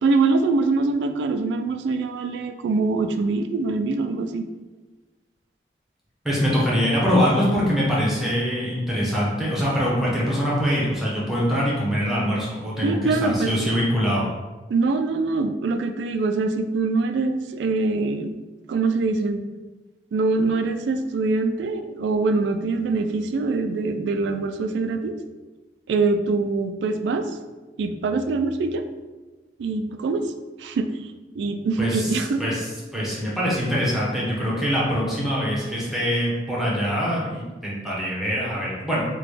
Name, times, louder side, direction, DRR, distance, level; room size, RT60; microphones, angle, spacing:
voice 1, 0.0-4.4 12.8-13.5 14.7-18.3 18.7-19.4 20.1-25.2 25.9-27.3 27.8-28.8 29.6-30.3 30.6-32.4, right 3 dB, 80° right, 8 dB, 0.3 m, -24 dB
voice 2, 6.2-14.2 31.8-32.7 32.9-39.0, equal, ahead, -6 dB, 0.9 m, -23 dB
3.9 x 2.2 x 3.2 m, 1.2 s
head